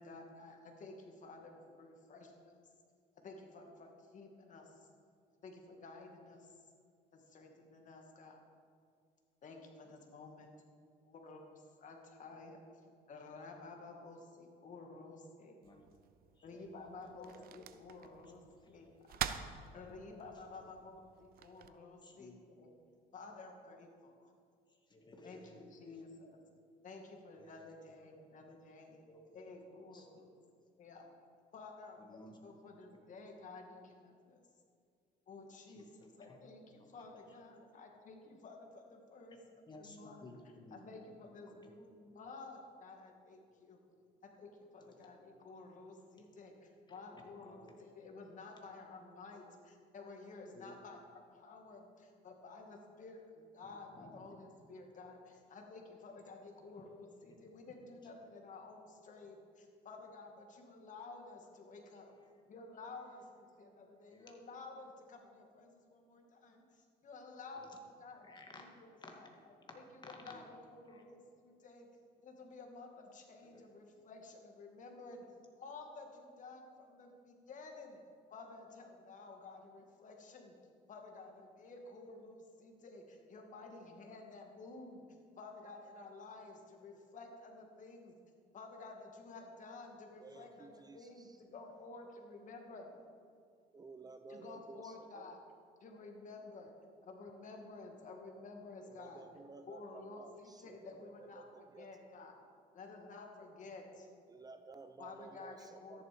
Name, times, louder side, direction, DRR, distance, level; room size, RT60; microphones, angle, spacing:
voice 1, 0.0-2.6 3.2-4.9 5.4-6.7 7.1-8.4 9.4-10.5 11.0-15.6 16.4-19.2 19.5-22.7 23.1-24.3 25.2-26.4 26.8-29.0 29.3-30.3 30.8-31.1 31.5-34.4 35.3-39.4 39.7-40.3 40.7-43.8 44.2-51.0 51.3-62.2 62.4-68.3 68.5-69.3 69.9-71.9 72.2-75.3 75.5-78.0 78.3-80.6 80.9-85.1 85.4-88.1 88.5-93.0 94.3-95.4 95.8-96.7 97.0-99.2 99.7-102.4 102.7-104.1 105.0-106.0, left 3 dB, 50° left, 3 dB, 2.2 m, -52 dB
voice 2, 15.6-15.9 16.3-16.6 17.0-17.5 18.6-19.0 19.7-19.8 20.1-20.2 20.5-20.6 22.0-22.4 24.7-26.0 27.3-27.7 29.1-29.3 29.9-30.1 32.0-32.4 35.7-36.4 36.8-37.0 39.7-40.8 41.2-41.7 44.8-45.1 46.2-46.3 46.9-47.7 48.6-48.7 50.5-50.8 53.6-54.4 57.3-57.4 58.0-58.1 64.1-64.3 67.5-67.7 68.2-68.7 69.0-69.8 70.0-70.4 70.9-71.0 73.4-73.6, left 2 dB, 25° left, 2 dB, 2.0 m, -57 dB
sound 1, 15.6-21.7, right 10 dB, 60° right, 0.7 m, -46 dB
voice 3, 90.2-91.4 93.7-95.4 98.9-102.1 104.3-106.0, right 4 dB, 25° right, 9 dB, 0.6 m, -55 dB
13.5 x 11.0 x 5.2 m, 2.2 s
cardioid pair, 110°, 17 cm